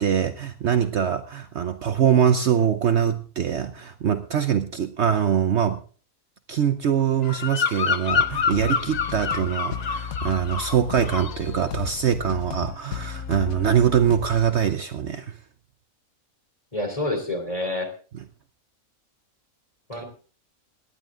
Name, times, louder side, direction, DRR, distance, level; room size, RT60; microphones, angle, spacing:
voice 1, 0.0-5.8 6.5-15.4, right 8 dB, 60° right, 10 dB, 0.9 m, -23 dB
Bird vocalization bird call bird song, 7.2-10.8 11.0-11.5, left 6 dB, 45° left, 0.6 m, -27 dB
sound 1, 8.1-14.5, left 7 dB, 85° left, 1.4 m, -34 dB
voice 2, 16.7-17.9 19.9-20.0, left 2 dB, 25° left, 4 dB, 3.2 m, -27 dB
18.5 x 10.5 x 3.7 m, 0.39 s
omnidirectional pair, 1.5 m